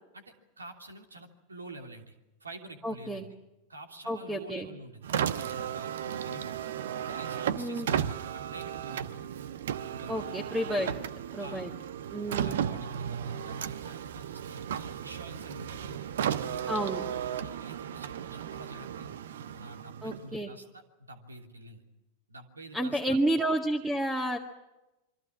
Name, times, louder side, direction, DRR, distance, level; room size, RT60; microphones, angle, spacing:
voice 1, 0.1-2.1 2.4-3.4 3.7-6.6 7.0-9.3 10.0-10.2 10.8-10.9 11.4-11.7 12.4-16.7 17.4-19.2 19.5-21.8 22.3-23.0, right 1 dB, 75° right, 5 dB, 3.0 m, -48 dB
voice 2, 2.8-3.2 4.1-4.7 7.6-7.9 10.1-10.9 11.4-11.7 12.1-12.7 16.7-17.0 20.0-20.5 22.7-24.4, right 1 dB, 10° right, 5 dB, 1.9 m, -30 dB
Car, 5.0-20.4, right 9 dB, 60° right, 1.0 m, -35 dB
27.5 x 24.5 x 6.2 m, 0.98 s
figure-of-eight pair, 90°, 0 cm